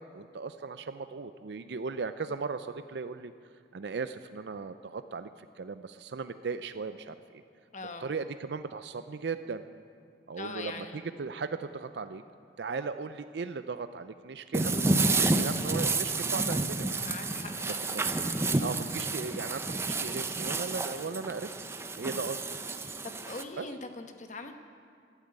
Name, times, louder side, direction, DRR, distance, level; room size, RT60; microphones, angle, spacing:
voice 1, 0.0-3.3 3.7-7.4 8.0-9.6 10.3-12.2 12.6-17.1 17.7-18.0 18.4-21.6 22.0-22.4 23.6-23.7, right 4 dB, 70° right, 11 dB, 0.5 m, -37 dB
voice 2, 7.7-8.1 10.4-11.0 17.0-17.8 22.1-22.2 22.8-24.5, left 3 dB, 45° left, 6 dB, 1.1 m, -42 dB
sound 1, 14.5-23.4, right 3 dB, 15° right, 0.6 m, -30 dB
12.5 x 11.5 x 8.7 m, 2.2 s
head